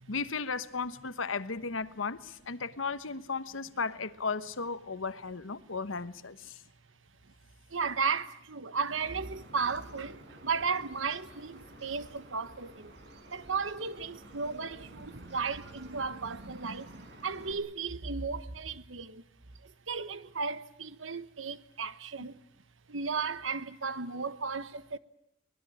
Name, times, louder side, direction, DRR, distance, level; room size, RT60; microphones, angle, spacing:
voice 1, 0.1-6.6, left 4 dB, 90° left, 1.1 m, -35 dB
voice 2, 7.7-12.9 13.3-19.2 19.6-22.4 22.9-25.0, right 5 dB, 80° right, 1.3 m, -35 dB
Bird vocalization bird call bird song, 8.9-17.5, right 1 dB, 60° right, 5.0 m, -52 dB
24.0 x 20.0 x 8.6 m
head